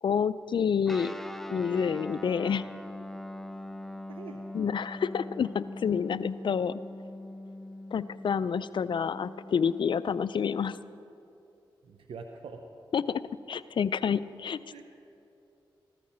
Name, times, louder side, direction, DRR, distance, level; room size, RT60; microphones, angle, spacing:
voice 1, 0.0-1.1 1.5-2.7 4.5-6.8 7.9-10.8 12.9-13.2 13.5-14.8, left 7 dB, 60° left, 16 dB, 0.4 m, -28 dB
Guitar, 0.9-10.8, left 1 dB, 5° left, 0.5 m, -42 dB
voice 2, 4.1-4.4 11.8-12.6 14.7-14.8, right 5 dB, 80° right, 5 dB, 0.7 m, -44 dB
14.5 x 13.0 x 4.3 m, 2.8 s
cardioid pair, 45°, 9 cm